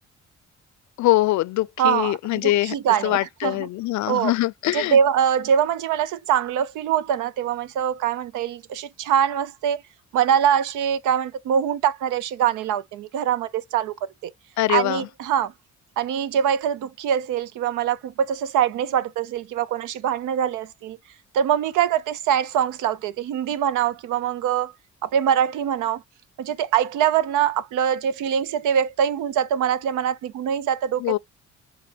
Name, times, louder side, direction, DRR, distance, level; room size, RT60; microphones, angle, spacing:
voice 1, 1.0-2.7 3.0-5.0 14.6-15.1 31.0-31.2, left 16 dB, 70° left, 0.5 m, -23 dB
voice 2, 1.8-2.2 2.4-3.7 4.1-4.3 4.7-9.8 10.1-13.9 14.2-14.3 14.7-15.5 16.0-21.0 21.3-24.7 25.0-26.0 26.4-31.0, right 9 dB, 85° right, 0.6 m, -23 dB
6.8 x 2.6 x 2.9 m
cardioid pair, 90°, 30 cm